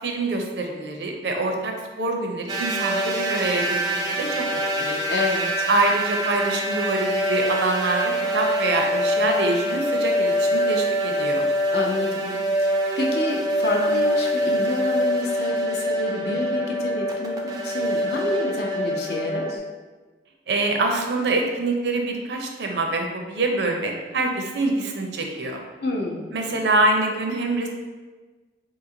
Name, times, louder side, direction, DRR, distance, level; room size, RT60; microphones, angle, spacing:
voice 1, 0.0-5.0 5.7-11.5 20.5-25.6 26.3-27.7, right 2 dB, 70° right, 2 dB, 0.5 m, -25 dB
sound 1, 2.5-19.6, equal, 20° right, 0.3 m, -24 dB
voice 2, 5.1-5.7 11.7-19.6 25.8-26.3, left 2 dB, 60° left, 0 dB, 0.5 m, -28 dB
3.0 x 2.8 x 3.7 m, 1.3 s
head